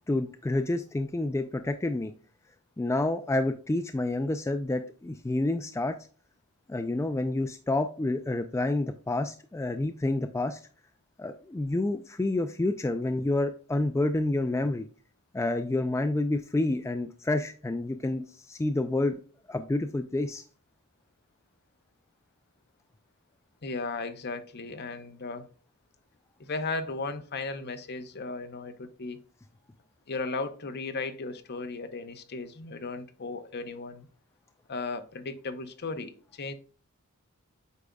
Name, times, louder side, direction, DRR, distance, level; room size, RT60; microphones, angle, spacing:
voice 1, 0.1-2.1 2.8-6.0 6.7-10.6 11.2-14.9 15.3-19.1 19.5-20.4, left 2 dB, 15° left, 0.3 m, -29 dB
voice 2, 23.6-25.5 26.4-29.2 30.1-34.1 34.7-36.5, left 3 dB, 50° left, 0.8 m, -36 dB
8.2 x 5.1 x 2.3 m
head